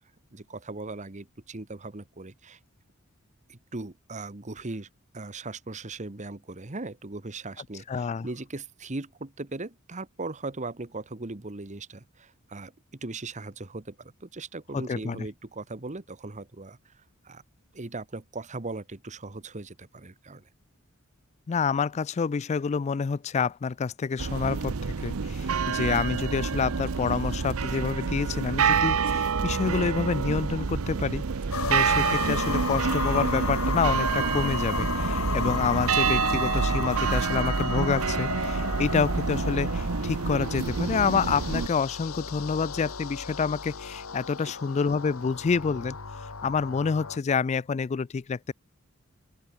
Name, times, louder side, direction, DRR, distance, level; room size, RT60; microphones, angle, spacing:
voice 1, 0.3-2.6 3.5-4.9 5.1-16.9 17.2-17.4 17.7-20.4 44.4-44.5, right 2 dB, 35° right, 1.3 m, -39 dB
voice 2, 7.9-8.3 14.7-15.3 21.5-31.3 31.7-46.0 46.4-48.5, left 5 dB, 30° left, 0.3 m, -28 dB
sound 1, 24.2-41.7, right 5 dB, 75° right, 0.7 m, -27 dB
sound 2, 31.5-47.2, left 5 dB, 75° left, 1.6 m, -34 dB
open air
head